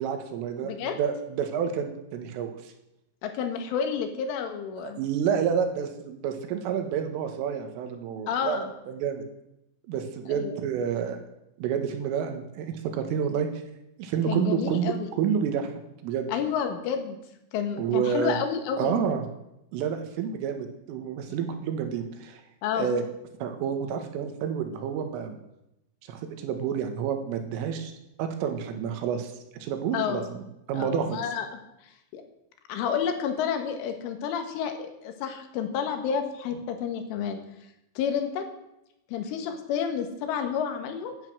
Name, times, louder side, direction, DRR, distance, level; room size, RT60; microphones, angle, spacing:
voice 1, 0.0-2.7 4.8-9.3 9.9-11.2 11.6-13.5 14.0-15.7 16.0-16.3 17.8-18.4 18.8-19.3 19.7-22.4 22.8-23.0 23.4-25.4 26.1-27.9 28.2-31.2, right 7 dB, 85° right, 6 dB, 4.2 m, -29 dB
voice 2, 0.6-1.0 3.2-5.0 8.3-8.7 10.4-10.6 14.3-15.1 16.3-17.2 17.5-19.0 21.3-21.4 22.6-22.9 29.9-30.3 30.7-31.6 32.1-32.2 32.7-37.4 38.0-38.5 39.1-41.1, left 7 dB, 80° left, 6 dB, 4.1 m, -30 dB
16.0 x 11.5 x 6.2 m, 0.87 s
omnidirectional pair, 5.7 m